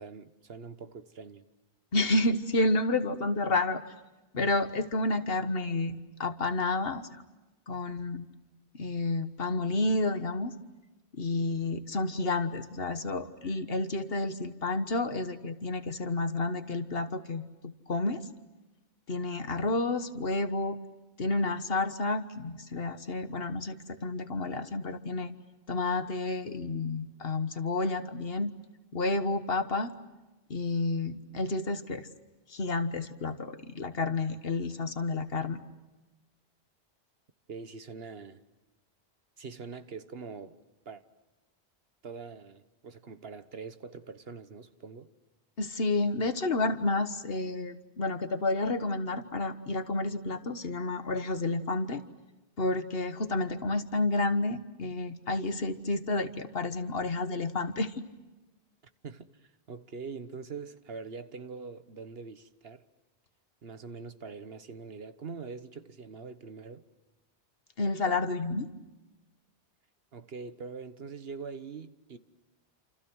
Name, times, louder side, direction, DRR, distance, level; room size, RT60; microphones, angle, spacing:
voice 1, 0.0-1.4 37.5-38.4 39.4-40.6 40.8-41.0 42.0-45.1 59.0-59.3 59.7-62.8 63.6-66.8 70.1-72.2, right 5 dB, 60° right, 1.4 m, -43 dB
voice 2, 1.9-3.8 4.3-7.2 7.7-8.3 8.7-10.6 11.1-18.2 19.1-20.8 21.2-25.3 25.7-28.5 28.9-29.9 30.5-32.1 32.5-35.6 45.6-52.0 52.6-58.0 67.8-68.7, left 2 dB, 60° left, 1.6 m, -30 dB
28.5 x 28.0 x 6.3 m
omnidirectional pair, 1.1 m